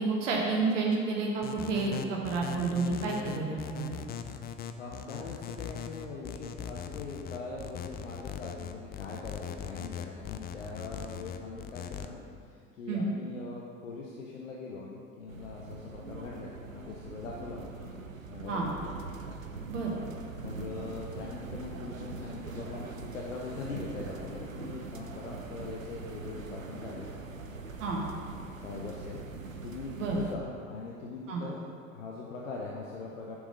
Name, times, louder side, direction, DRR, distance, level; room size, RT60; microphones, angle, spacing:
voice 1, 0.0-4.0 12.9-13.0 18.5-18.7 19.7-19.9 27.8-28.0 30.0-30.2 31.3-31.4, right 4 dB, 70° right, -1 dB, 1.3 m, -30 dB
sound 1, 1.4-12.1, left 9 dB, 25° left, 0.4 m, -40 dB
voice 2, 4.8-17.7 18.3-19.0 20.3-27.1 28.6-29.2 29.6-31.6 31.9-33.4, left 4 dB, 75° left, -2 dB, 0.9 m, -42 dB
sound 2, 15.3-30.4, right 4 dB, 90° right, 0.6 m, -42 dB
7.1 x 6.2 x 5.3 m, 2.2 s
figure-of-eight pair, 65°, 39 cm